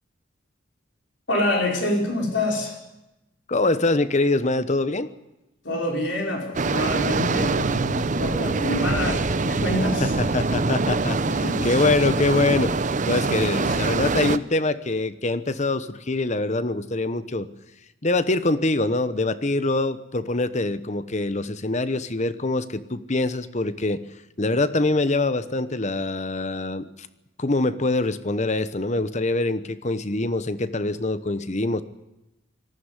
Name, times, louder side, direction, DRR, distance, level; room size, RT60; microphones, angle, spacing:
voice 1, 1.3-2.8 5.6-10.1 11.3-11.7 13.7-13.8, left 1 dB, 65° left, 0 dB, 5.4 m, -26 dB
voice 2, 3.5-5.1 10.0-12.7 13.1-17.5 18.0-24.0 24.4-27.1 27.4-31.8, left 2 dB, 35° left, 13 dB, 1.0 m, -24 dB
Breaking Waves, 6.5-14.4, right 3 dB, 40° right, 0.7 m, -24 dB
19.0 x 15.0 x 9.9 m, 0.94 s
head